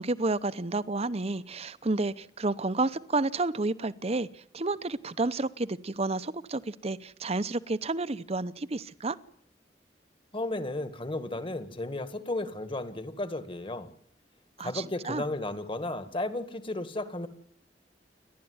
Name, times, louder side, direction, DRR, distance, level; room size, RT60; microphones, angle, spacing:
voice 1, 0.0-9.2 14.6-15.2, right 2 dB, 35° right, 15 dB, 0.8 m, -30 dB
voice 2, 10.3-13.9 14.6-17.3, left 2 dB, 30° left, 11 dB, 1.9 m, -34 dB
29.5 x 12.0 x 9.6 m, 0.69 s
head